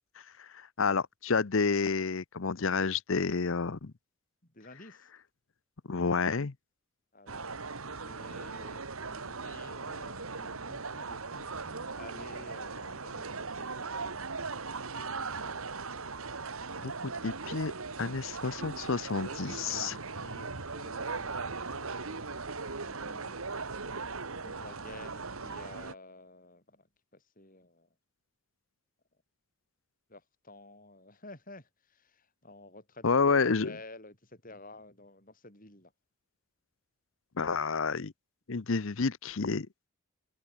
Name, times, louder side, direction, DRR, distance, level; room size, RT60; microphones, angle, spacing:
voice 1, 0.4-3.9 5.9-6.5 16.8-17.7 18.0-20.0 33.0-33.7 37.4-38.1 38.5-39.7, left 4 dB, 60° left, 0.7 m, -29 dB
voice 2, 4.4-5.1 7.1-14.4 15.5-15.6 18.0-18.1 19.1-23.6 24.0-24.1 24.4-26.9 27.1-27.9 30.1-35.9, left 2 dB, 40° left, 7.7 m, -52 dB
sound 1, 7.3-25.9, right 4 dB, 70° right, 1.8 m, -39 dB
open air
head